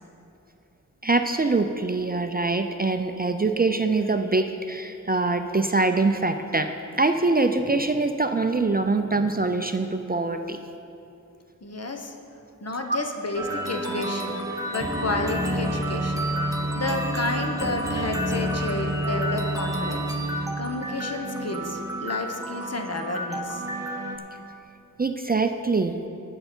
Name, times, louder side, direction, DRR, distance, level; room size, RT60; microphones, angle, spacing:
voice 1, 1.0-6.7 7.0-10.6 12.9-13.0 25.0-26.0, right 3 dB, 30° right, 7 dB, 0.4 m, -24 dB
voice 2, 11.6-12.1 12.6-14.4 14.6-16.3 16.7-20.1 20.6-23.6, left 2 dB, 50° left, 3 dB, 1.1 m, -31 dB
sound 1, 13.4-24.2, right 1 dB, 10° right, 1.2 m, -29 dB
18.5 x 6.7 x 4.4 m, 2.8 s
wide cardioid pair, 75°, 33 cm